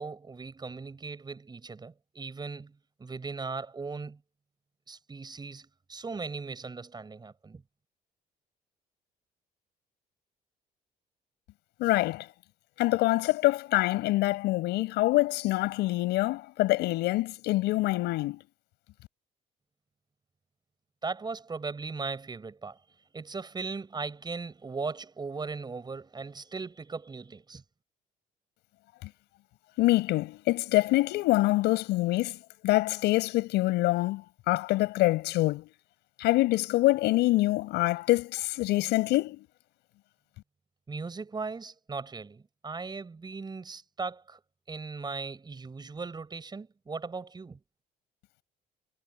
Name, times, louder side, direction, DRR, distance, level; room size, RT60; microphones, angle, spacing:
voice 1, 0.0-2.7 3.0-4.2 4.9-7.6 21.0-22.8 23.1-27.6 40.9-44.4 44.7-47.6, right 4 dB, 25° right, 7.7 m, -38 dB
voice 2, 11.8-12.2 12.8-18.4 29.8-32.4 32.6-35.6 36.2-39.4, left 18 dB, 90° left, 6.3 m, -25 dB
cardioid pair, 110°, 17 cm